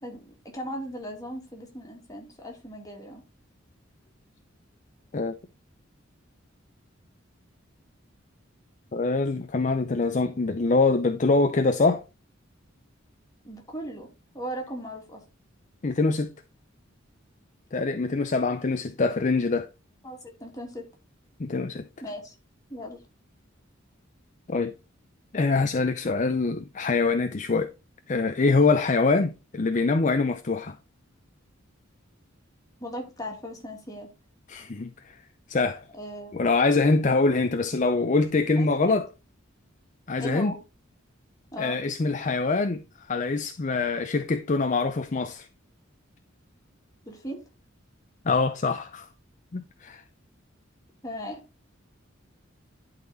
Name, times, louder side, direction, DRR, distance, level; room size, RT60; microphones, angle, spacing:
voice 1, 0.0-3.2 13.4-14.1 14.3-15.2 20.0-20.9 22.0-22.3 22.7-23.0 32.8-34.1 35.9-36.4 38.6-39.0 40.2-40.6 41.5-41.8 47.1-47.4 51.0-51.4, equal, 20° left, 2.5 m, -37 dB
voice 2, 8.9-12.0 15.8-16.3 17.7-19.7 21.4-21.9 24.5-24.7 25.3-27.7 28.1-30.8 34.5-35.1 35.5-35.8 36.3-39.1 40.1-40.5 41.6-45.5 48.2-49.1 49.5-50.0, left 3 dB, 40° left, 0.5 m, -24 dB
11.0 x 4.2 x 3.9 m
head